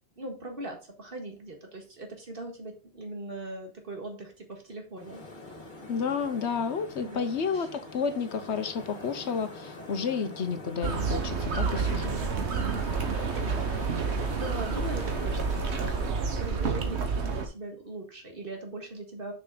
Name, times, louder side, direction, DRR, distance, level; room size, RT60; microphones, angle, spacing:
voice 1, 0.2-5.2 7.0-7.3 7.5-7.7 11.8-12.5 13.0-16.1 16.4-19.3, right 2 dB, 55° right, 3 dB, 2.0 m, -40 dB
sound 1, 5.0-16.1, left 2 dB, 45° left, 1.8 m, -44 dB
voice 2, 5.9-12.2, left 6 dB, 80° left, 10 dB, 1.2 m, -31 dB
sound 2, 10.8-17.5, right 5 dB, 80° right, 1.4 m, -29 dB
6.6 x 5.8 x 3.9 m, 0.35 s
omnidirectional pair, 1.1 m